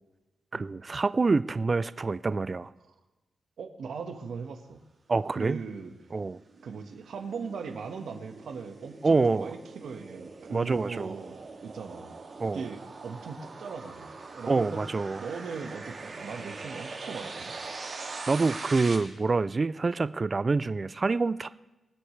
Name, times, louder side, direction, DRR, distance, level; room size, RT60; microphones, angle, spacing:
voice 1, 0.5-2.7 5.1-5.6 6.1-6.4 9.0-9.5 10.5-11.1 12.4-12.6 14.5-15.2 18.3-21.5, right 3 dB, 30° right, 15 dB, 0.3 m, -26 dB
voice 2, 3.6-4.8 5.4-5.9 6.6-12.2 12.5-17.5, right 5 dB, 75° right, 5 dB, 1.4 m, -39 dB
sound 1, 5.7-18.9, right 3 dB, 45° right, 2.3 m, -42 dB
22.5 x 9.8 x 3.3 m, 1.1 s
wide cardioid pair, 155°, 0 cm